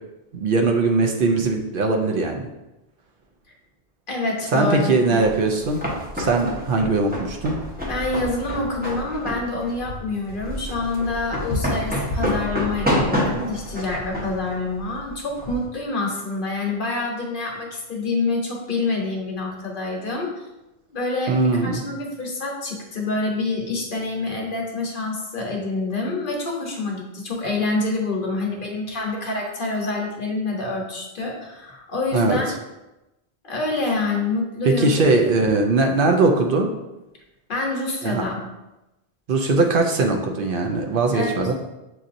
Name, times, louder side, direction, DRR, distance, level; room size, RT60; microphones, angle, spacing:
voice 1, 0.3-2.5 4.5-5.9 6.1-7.5 21.3-21.8 32.1-32.4 34.6-36.7 38.0-38.2 39.3-41.5, right 3 dB, 65° right, 3 dB, 0.7 m, -20 dB
voice 2, 4.1-5.2 7.9-20.3 20.9-32.5 33.4-34.9 35.2-35.3 37.5-38.4 41.1-41.5, left 3 dB, 55° left, 0 dB, 1.0 m, -27 dB
sound 1, 5.2-15.7, equal, 10° right, 0.8 m, -28 dB
7.5 x 2.7 x 2.5 m, 0.98 s
omnidirectional pair, 1.1 m